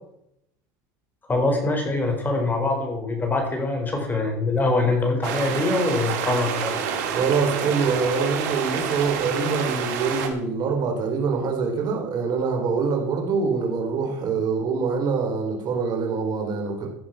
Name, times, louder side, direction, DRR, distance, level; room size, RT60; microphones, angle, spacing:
voice 1, 1.3-6.8, left 2 dB, 20° left, 3 dB, 4.5 m, -24 dB
sound 1, 5.2-10.3, right 7 dB, 80° right, 2.5 m, -28 dB
voice 2, 7.1-16.9, right 5 dB, 50° right, 2 dB, 3.8 m, -25 dB
15.0 x 7.8 x 5.8 m, 0.76 s
supercardioid pair, 105°, 9 cm